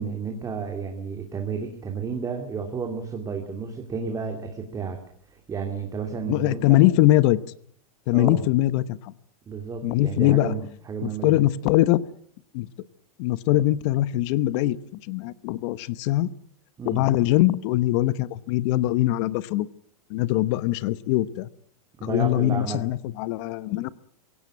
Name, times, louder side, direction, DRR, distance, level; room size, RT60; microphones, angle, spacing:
voice 1, 0.0-5.0 5.3-6.8 8.1-8.4 9.5-11.4 16.8-17.0 22.0-22.8, right 5 dB, 20° right, 3 dB, 2.6 m, -32 dB
voice 2, 6.3-7.4 8.1-9.1 9.8-10.5 11.0-12.0 12.5-12.7 13.2-14.8 15.1-16.3 16.8-19.7 20.1-21.5 22.0-23.9, left 15 dB, 50° left, 17 dB, 1.0 m, -22 dB
21.5 x 17.0 x 8.7 m, 0.63 s
supercardioid pair, 135°, 19 cm